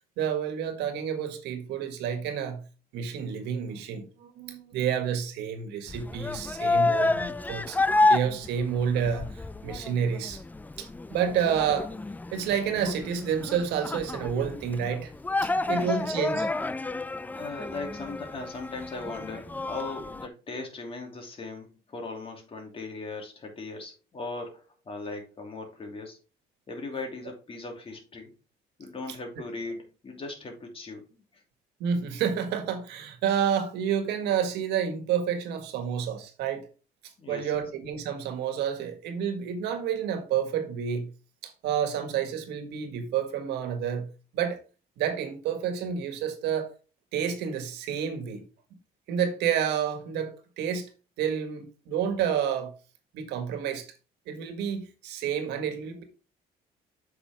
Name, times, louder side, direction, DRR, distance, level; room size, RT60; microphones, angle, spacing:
voice 1, 0.2-2.6 2.9-7.8 8.1-10.4 10.8-11.9 12.3-15.1 15.7-16.5 31.8-36.7 37.3-41.1 41.4-44.6 45.0-46.7 47.1-48.4 49.1-50.9 51.2-52.7 53.1-53.9 54.3-56.0, right 8 dB, 85° right, 1.8 m, -29 dB
sound 1, 5.9-20.3, left 2 dB, 10° left, 0.4 m, -30 dB
voice 2, 15.7-16.3 17.2-26.2 26.7-28.3 28.8-31.4 37.2-37.6, left 3 dB, 35° left, 2.9 m, -39 dB
7.8 x 6.1 x 3.6 m
cardioid pair, 110°, 17 cm